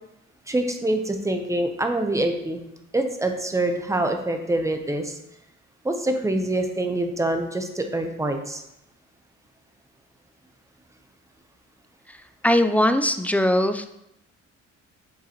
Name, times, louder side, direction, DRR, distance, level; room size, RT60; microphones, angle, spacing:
voice 1, 0.5-2.6 2.9-5.2 5.8-8.6, right 1 dB, 10° right, 5 dB, 0.7 m, -25 dB
voice 2, 12.4-13.9, left 1 dB, 5° left, 9 dB, 0.3 m, -20 dB
8.6 x 3.8 x 3.0 m, 0.82 s
cardioid pair, 90°, 30 cm